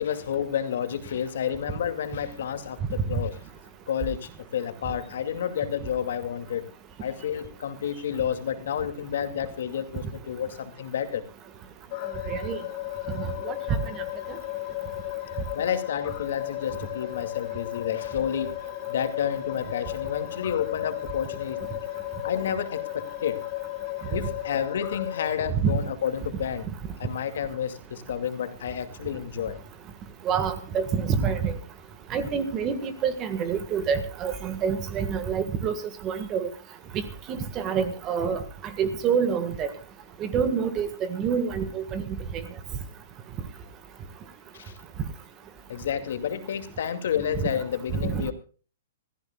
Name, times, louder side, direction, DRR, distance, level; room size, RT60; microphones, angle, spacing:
voice 1, 0.0-3.4 3.9-6.7 7.0-11.2 15.5-18.5 18.9-21.6 22.2-23.4 24.1-26.7 27.0-29.6 44.5-44.7 45.7-48.3, left 8 dB, 65° left, 9 dB, 2.3 m, -30 dB
sound 1, 11.9-25.3, left 18 dB, 35° left, 2.0 m, -34 dB
voice 2, 12.3-12.6 13.2-13.5 25.6-25.7 30.2-31.5 32.1-36.5 37.3-38.4 38.8-39.7 40.2-42.1 47.4-47.5 48.0-48.2, right 6 dB, 20° right, 11 dB, 1.6 m, -27 dB
25.5 x 15.0 x 2.3 m, 0.37 s
hypercardioid pair, 160°, 0 cm